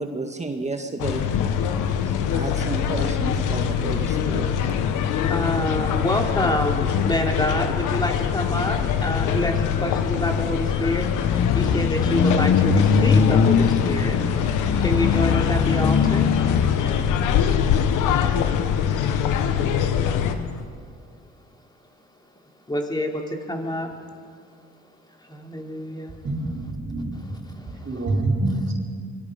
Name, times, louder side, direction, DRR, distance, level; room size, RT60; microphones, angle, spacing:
voice 1, 0.0-1.4 1.9-2.0 2.3-4.5, right 2 dB, 25° right, 4 dB, 1.8 m, -31 dB
sound 1, 1.0-20.4, left 8 dB, 90° left, 1.2 m, -24 dB
sound 2, 3.5-20.6, left 6 dB, 65° left, 1.5 m, -25 dB
voice 2, 5.3-11.1 11.5-14.2 14.8-16.3 22.7-23.9 25.3-26.2 27.4-28.0, left 1 dB, 15° left, 2 dB, 3.2 m, -27 dB
voice 3, 26.2-27.1 27.8-28.7, right 2 dB, 40° right, -2 dB, 4.8 m, -25 dB
25.5 x 23.0 x 5.2 m, 2.1 s
cardioid pair, 90°, 30 cm